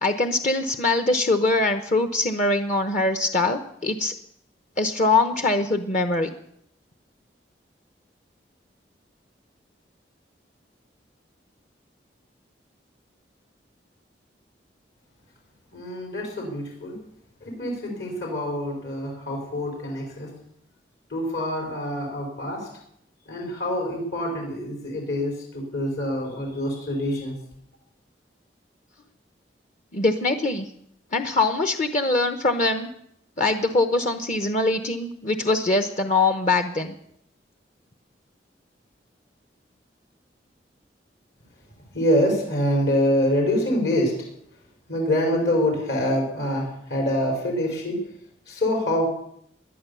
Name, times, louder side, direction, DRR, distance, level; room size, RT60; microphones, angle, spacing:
voice 1, 0.0-4.1 4.8-6.3 29.9-30.7 31.1-32.9 33.4-36.9, left 2 dB, 45° left, 7 dB, 0.9 m, -23 dB
voice 2, 15.7-17.0 17.4-20.3 21.1-22.7 23.3-27.3 41.9-44.1 44.9-48.0 48.5-49.1, left 1 dB, 70° left, 0 dB, 4.8 m, -25 dB
18.5 x 11.0 x 6.9 m, 0.73 s
head